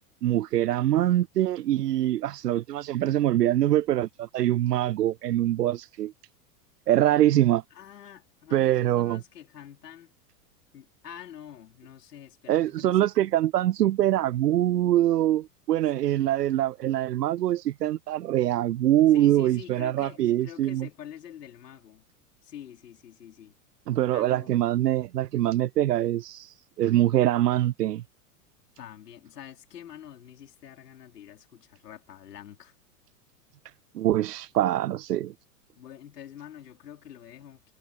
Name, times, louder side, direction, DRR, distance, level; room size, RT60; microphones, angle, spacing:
voice 1, 0.2-6.1 6.9-7.6 8.5-9.2 12.5-20.9 23.9-28.0 33.9-35.3, right 13 dB, 85° right, 0.6 m, -24 dB
voice 2, 7.7-10.1 10.7-13.3 15.9-16.1 19.1-22.0 22.4-23.6 24.1-24.5 28.8-32.7 35.7-37.7, left 10 dB, 80° left, 4.8 m, -46 dB
hypercardioid pair, 100°, 47 cm